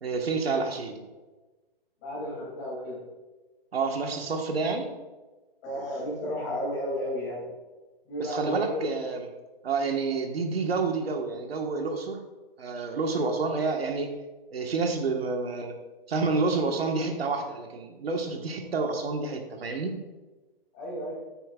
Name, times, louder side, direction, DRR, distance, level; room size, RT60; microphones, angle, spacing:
voice 1, 0.0-1.0 3.7-4.9 8.2-9.3 9.6-12.2 12.6-14.1 14.5-15.8 16.1-20.0, right 4 dB, 80° right, 4 dB, 1.5 m, -29 dB
voice 2, 2.0-3.0 5.6-7.6 8.0-8.9 20.7-21.3, equal, 20° left, -5 dB, 2.8 m, -33 dB
9.4 x 9.0 x 2.4 m, 1.2 s
hypercardioid pair, 175°, 29 cm